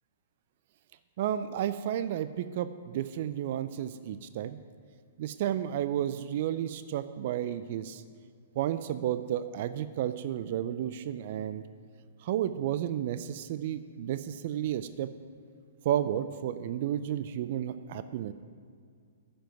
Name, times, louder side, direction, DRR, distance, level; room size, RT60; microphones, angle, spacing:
voice 1, 1.2-4.6 5.2-8.0 8.6-11.6 12.2-15.1 15.8-18.3, right 11 dB, 55° right, 13 dB, 0.5 m, -32 dB
10.0 x 7.7 x 9.1 m, 2.2 s
hypercardioid pair, 115°, 0 cm